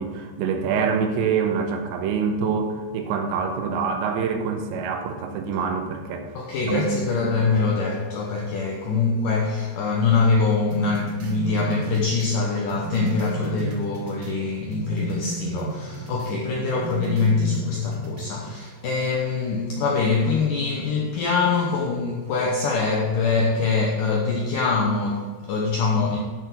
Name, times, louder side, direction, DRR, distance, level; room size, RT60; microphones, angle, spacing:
voice 1, 0.0-6.3 6.6-6.8, right 6 dB, 85° right, 3.4 m, -25 dB
voice 2, 6.4-26.2, left 4 dB, 80° left, 1.9 m, -24 dB
sound 1, 10.7-14.4 14.7-16.4 16.7-18.3, right 2 dB, 65° right, 1.5 m, -32 dB
12.0 x 6.8 x 4.4 m
omnidirectional pair, 5.0 m